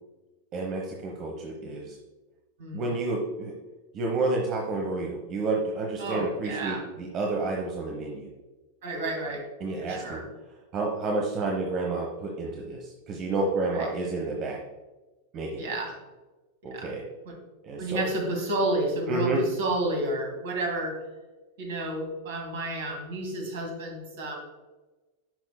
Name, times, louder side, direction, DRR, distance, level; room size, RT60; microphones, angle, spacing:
voice 1, 0.5-2.0 2.7-3.5 3.9-8.3 9.6-10.2 10.7-14.6 15.3-15.7 16.6-17.0 17.6-18.1 19.1-19.4, right 3 dB, 35° right, 0 dB, 1.0 m, -30 dB
voice 2, 6.0-6.8 8.8-9.4 9.8-10.2 13.7-13.9 15.6-15.9 16.7-16.9 17.3-17.4 17.8-21.0 21.6-24.4, right 1 dB, 55° right, 2 dB, 2.1 m, -31 dB
10.5 x 6.0 x 2.2 m, 1.2 s
figure-of-eight pair, 90°, 0 cm